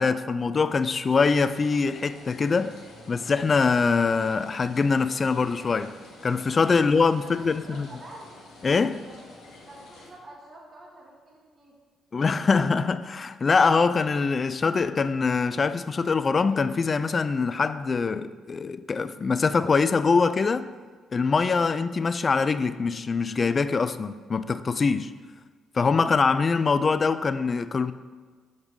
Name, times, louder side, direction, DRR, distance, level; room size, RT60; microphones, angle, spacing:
voice 1, 0.0-2.7 3.1-6.0 6.2-7.9 8.6-9.0 12.1-20.7 21.1-25.1 25.7-27.9, left 4 dB, 40° left, 0.3 m, -23 dB
sound 1, 1.0-10.1, left 2 dB, 75° left, 1.1 m, -49 dB
voice 2, 6.7-8.3 9.0-9.2 9.7-11.7, right 1 dB, 45° right, 1.6 m, -48 dB
5.4 x 5.0 x 4.6 m
hypercardioid pair, 55°, 0 cm